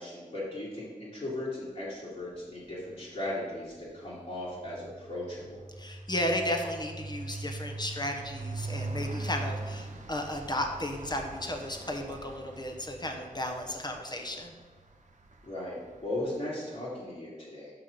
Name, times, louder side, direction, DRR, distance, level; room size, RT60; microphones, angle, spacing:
voice 1, 0.0-5.6 15.4-17.7, left 1 dB, 55° left, -9 dB, 2.3 m, -37 dB
sound 1, 2.6-3.0 3.3-16.4, right 2 dB, 60° right, 0.9 m, -42 dB
voice 2, 5.8-14.5, left 1 dB, 30° left, 4 dB, 1.1 m, -34 dB
5.9 x 5.6 x 5.1 m, 1.4 s
wide cardioid pair, 65°, 14 cm